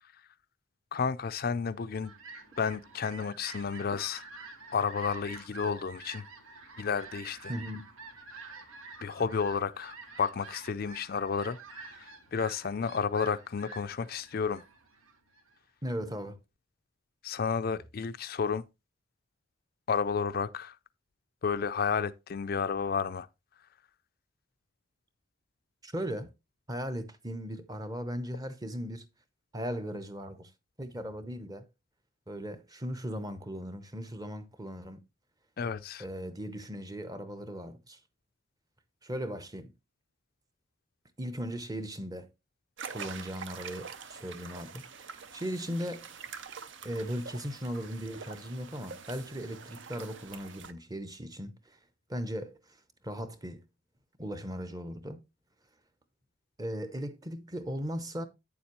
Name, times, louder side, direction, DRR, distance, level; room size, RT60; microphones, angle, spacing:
voice 1, 0.9-2.1 2.6-4.2 4.7-6.2 6.8-7.5 9.0-14.6 17.2-18.7 19.9-20.8 21.4-23.3 35.6-36.0, left 6 dB, 45° left, 0.4 m, -31 dB
Fowl, 1.6-15.6, right 4 dB, 90° right, 1.6 m, -48 dB
voice 2, 7.5-7.8 15.8-16.4 25.8-26.3 26.7-29.1 29.5-30.5 30.8-31.6 32.3-35.0 36.0-38.0 39.0-39.7 41.2-42.3 42.9-46.3 46.8-51.8 52.1-52.8 53.0-53.6 54.2-55.2 56.6-58.3, equal, 20° right, 0.7 m, -38 dB
sound 1, 42.8-50.7, right 6 dB, 60° right, 0.7 m, -45 dB
9.0 x 7.1 x 3.0 m
head